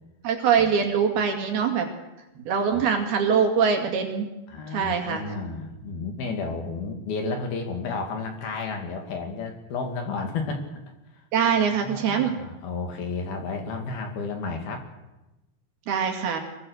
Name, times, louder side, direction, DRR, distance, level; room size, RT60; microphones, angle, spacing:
voice 1, 0.2-1.9 2.5-4.3 4.7-5.2 11.3-12.4 15.9-16.4, right 7 dB, 60° right, 3 dB, 4.1 m, -23 dB
voice 2, 4.5-10.7 11.6-14.9, left 4 dB, 60° left, 4 dB, 4.1 m, -32 dB
23.5 x 22.0 x 6.5 m, 1.0 s
omnidirectional pair, 5.2 m